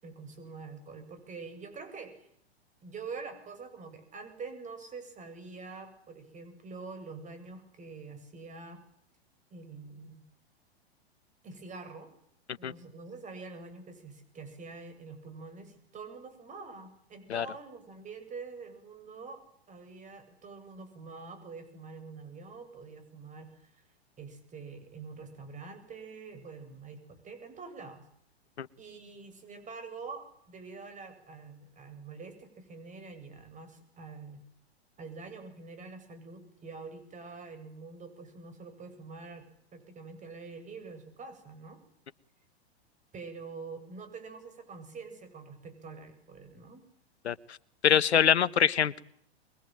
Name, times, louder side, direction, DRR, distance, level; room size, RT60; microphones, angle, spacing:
voice 1, 0.0-2.3 2.8-8.8 9.5-10.2 11.4-12.1 12.6-23.8 24.2-28.0 28.8-34.4 35.0-39.4 39.7-41.8 43.1-46.9, right 4 dB, 25° right, 10 dB, 7.9 m, -46 dB
voice 2, 47.2-47.6 47.8-49.0, left 8 dB, 80° left, 19 dB, 1.3 m, -24 dB
25.0 x 22.5 x 9.3 m, 0.69 s
hypercardioid pair, 110°, 32 cm